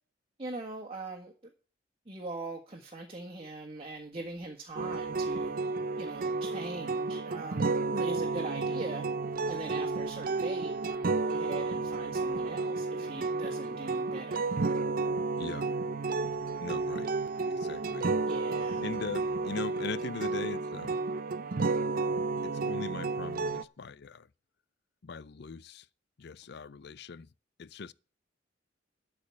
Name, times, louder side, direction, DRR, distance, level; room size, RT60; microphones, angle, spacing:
voice 1, 0.4-1.3 2.1-5.5 6.0-7.6 7.9-9.0 9.5-14.5 18.3-18.8, right 2 dB, 30° right, 1.7 m, -41 dB
sound 1, 4.8-23.6, right 3 dB, 50° right, 0.6 m, -32 dB
voice 2, 15.4-15.7 16.6-17.1 17.5-18.1 18.8-21.0 22.4-24.3 25.0-25.9 26.2-27.3 27.6-27.9, left 5 dB, 65° left, 0.5 m, -40 dB
13.0 x 5.0 x 8.4 m
head